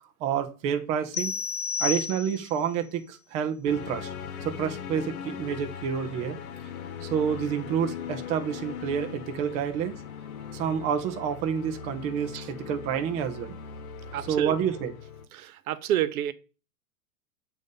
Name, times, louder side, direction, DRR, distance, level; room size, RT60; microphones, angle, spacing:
voice 1, 0.2-1.4 1.8-4.1 4.4-6.4 7.0-10.0 10.5-13.5 14.3-14.9, right 8 dB, 20° right, 0.3 m, -29 dB
sound 1, 1.1-2.7, left 6 dB, 40° left, 0.5 m, -31 dB
sound 2, 3.6-15.3, left 7 dB, 80° left, 1.0 m, -40 dB
voice 2, 14.1-14.5 15.3-16.3, right 12 dB, 85° right, 0.7 m, -29 dB
7.9 x 2.6 x 5.2 m
hypercardioid pair, 130°, 42 cm